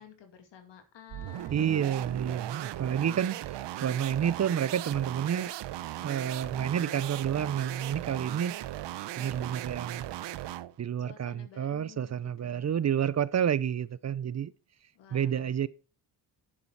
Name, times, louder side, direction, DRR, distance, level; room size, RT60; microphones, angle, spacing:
voice 1, 0.0-1.6 11.0-12.8 14.9-15.5, left 8 dB, 85° left, 2.3 m, -52 dB
sound 1, 1.1-10.8, right 14 dB, 80° right, 0.7 m, -38 dB
voice 2, 1.5-5.5 6.0-8.6 9.2-10.1 10.8-14.5 15.1-15.7, right 9 dB, 40° right, 0.5 m, -30 dB
10.0 x 6.8 x 4.6 m
cardioid pair, 95°, 42 cm